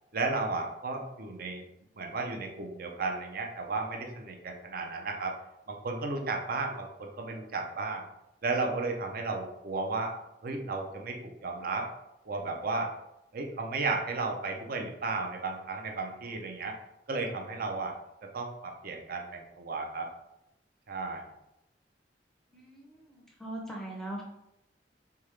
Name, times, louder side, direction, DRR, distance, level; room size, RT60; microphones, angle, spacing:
voice 1, 0.1-1.6 2.0-5.4 5.7-8.0 8.4-10.1 10.4-11.9 12.3-12.9 13.3-16.8 17.1-17.9 18.3-20.1 20.9-21.2, right 3 dB, 55° right, 3 dB, 0.6 m, -34 dB
voice 2, 22.5-24.2, right 1 dB, ahead, -2 dB, 0.6 m, -41 dB
3.7 x 3.5 x 3.2 m, 0.86 s
head